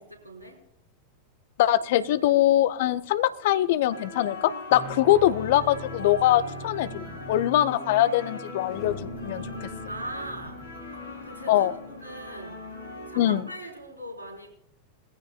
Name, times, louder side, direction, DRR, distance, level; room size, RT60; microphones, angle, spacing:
voice 1, 0.2-0.6 9.9-10.6 11.2-12.6 13.1-14.5, right 1 dB, 80° right, 0 dB, 3.9 m, -39 dB
voice 2, 1.6-9.7 11.5-11.7 13.2-13.4, left 13 dB, 55° left, 15 dB, 0.6 m, -23 dB
sound 1, 3.9-13.4, left 2 dB, 75° left, 3.0 m, -41 dB
sound 2, 4.7-13.1, left 1 dB, 15° left, 6.7 m, -42 dB
21.0 x 15.0 x 2.2 m, 0.72 s
figure-of-eight pair, 90°, 0 cm